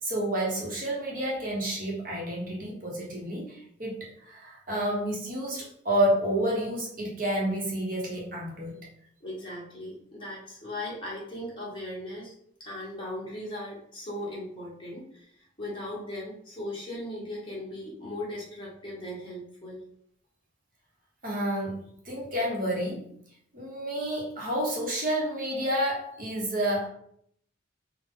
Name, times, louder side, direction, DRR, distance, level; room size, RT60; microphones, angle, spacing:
voice 1, 0.0-8.8 21.2-23.1 23.5-26.9, right 1 dB, 45° right, -3 dB, 1.2 m, -30 dB
voice 2, 9.2-12.3 12.6-19.8, left 1 dB, 25° left, -6 dB, 1.5 m, -38 dB
4.1 x 2.5 x 3.7 m, 0.68 s
head